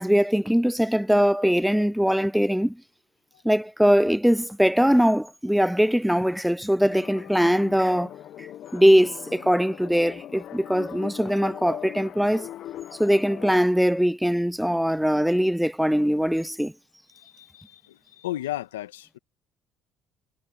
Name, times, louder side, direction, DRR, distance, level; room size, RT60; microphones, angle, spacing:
voice 1, 0.0-2.8 3.4-8.1 8.4-8.5 8.7-12.5 13.0-16.7, equal, ahead, 0.6 m, -21 dB
sound 1, 6.8-13.6, left 12 dB, 60° left, 1.3 m, -40 dB
voice 2, 17.1-19.2, left 14 dB, 90° left, 1.8 m, -35 dB
hypercardioid pair, 60°, 0 cm